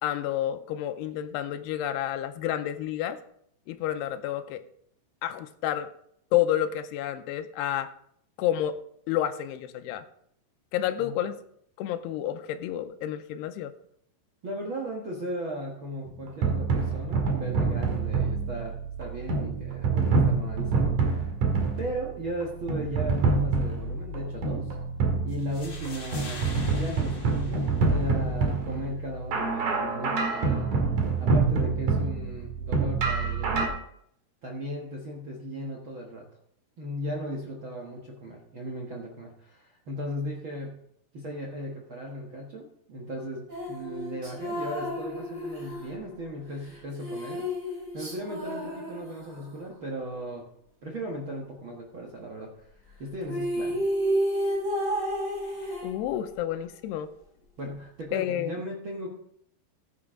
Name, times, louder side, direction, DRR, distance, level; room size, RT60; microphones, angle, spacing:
voice 1, 0.0-3.2 3.7-4.6 5.2-5.9 6.3-7.9 8.4-8.8 9.1-10.1 10.7-11.4 11.8-13.7 55.8-57.1 58.1-58.5, left 11 dB, 85° left, 9 dB, 2.7 m, -29 dB
voice 2, 14.4-21.3 21.8-24.7 25.2-30.7 31.2-33.7 34.4-36.2 36.8-40.8 41.1-50.5 50.8-53.8 57.6-59.1, equal, 85° right, -2 dB, 1.1 m, -37 dB
sound 1, 16.1-33.7, right 4 dB, 55° right, 3.1 m, -27 dB
sound 2, 25.3-28.3, left 3 dB, 35° left, 3.1 m, -44 dB
sound 3, 43.5-49.7 52.9-53.0 53.2-56.4, equal, 25° right, 4.8 m, -31 dB
15.0 x 9.6 x 3.7 m, 0.68 s
omnidirectional pair, 4.9 m